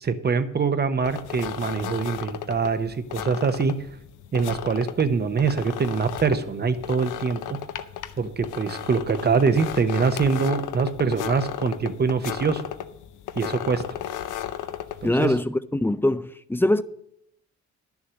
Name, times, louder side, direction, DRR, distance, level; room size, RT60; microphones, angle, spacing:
voice 1, 0.0-3.7 4.3-7.4 8.2-12.6 13.4-13.8 15.0-15.3, right 5 dB, 35° right, 0.9 m, -24 dB
sound 1, 1.0-15.4, left 11 dB, 85° left, 0.7 m, -35 dB
voice 2, 15.0-16.8, left 1 dB, 5° left, 0.4 m, -23 dB
11.0 x 7.2 x 6.3 m
cardioid pair, 90°, 30 cm